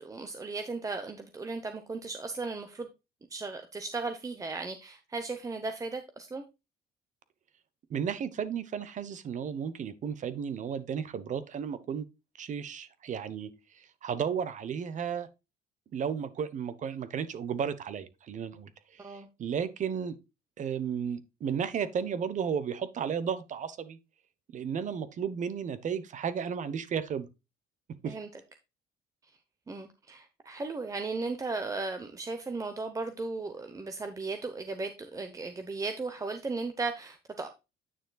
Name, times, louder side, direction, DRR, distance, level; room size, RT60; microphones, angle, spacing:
voice 1, 0.0-2.9 3.3-6.4 19.0-19.3 28.1-28.3 29.7-37.5, right 3 dB, 20° right, 0.9 m, -36 dB
voice 2, 7.9-12.1 12.4-15.3 15.9-20.2 20.6-24.0 24.5-27.3 28.0-28.2, right 7 dB, 45° right, 1.0 m, -34 dB
9.3 x 6.6 x 2.3 m
cardioid pair, 110°, 17 cm